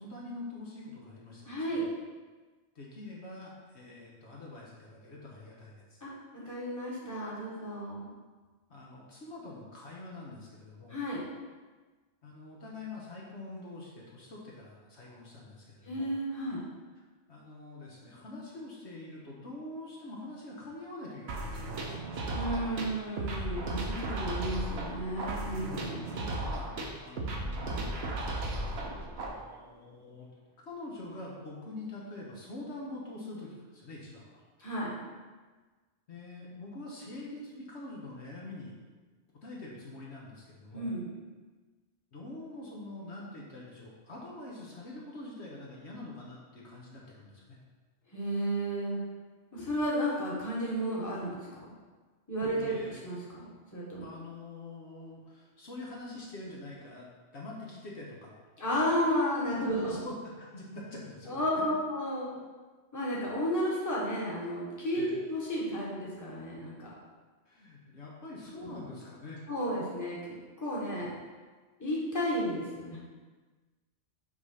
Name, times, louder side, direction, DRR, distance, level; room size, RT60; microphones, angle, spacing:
voice 1, 0.0-1.8 2.7-6.0 8.7-11.0 12.2-16.1 17.3-21.8 25.6-30.3 30.7-34.4 36.1-38.7 39.4-40.9 42.1-47.6 52.5-53.0 54.0-58.3 59.8-61.8 64.9-65.1 67.4-69.4 71.0-71.1, left 2 dB, 65° left, -4 dB, 1.4 m, -45 dB
voice 2, 1.4-1.9 6.0-8.1 10.9-11.2 15.8-16.6 22.3-26.1 34.6-35.0 40.7-41.1 48.1-49.0 49.5-51.6 52.3-53.4 53.7-54.0 58.6-59.9 61.3-62.3 62.9-65.0 65.3-66.9 68.5-68.7 69.5-71.1 71.8-73.0, equal, 15° left, -6 dB, 1.3 m, -33 dB
sound 1, 21.3-29.3, right 2 dB, 60° right, 1.0 m, -35 dB
5.8 x 3.3 x 5.6 m, 1.4 s
omnidirectional pair, 1.2 m